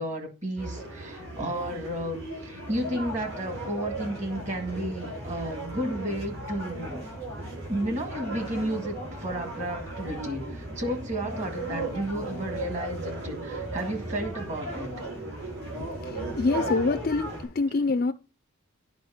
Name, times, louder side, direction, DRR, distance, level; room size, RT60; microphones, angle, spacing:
voice 1, 0.0-7.0 7.7-14.9, right 1 dB, 30° right, 1.8 m, -32 dB
sound 1, 0.6-17.4, right 1 dB, 65° right, 6.1 m, -36 dB
voice 2, 15.8-17.3 17.5-18.1, left 3 dB, 40° left, 0.4 m, -26 dB
9.4 x 5.2 x 5.6 m
head